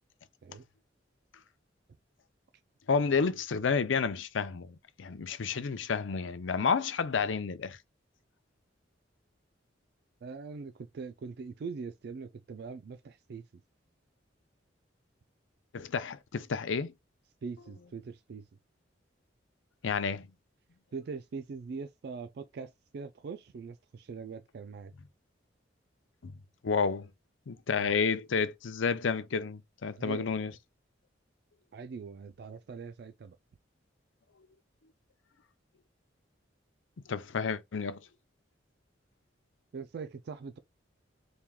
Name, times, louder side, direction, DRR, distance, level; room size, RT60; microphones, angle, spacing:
voice 1, 2.9-7.8 15.7-16.9 19.8-20.3 26.2-26.3 26.6-27.1 27.5-30.5 37.1-38.0, left 5 dB, 85° left, 0.5 m, -30 dB
voice 2, 10.2-13.5 17.4-18.5 20.9-24.9 27.7-27.9 30.0-30.3 31.7-33.4 39.7-40.6, right 5 dB, 55° right, 0.3 m, -42 dB
4.3 x 2.3 x 3.5 m
head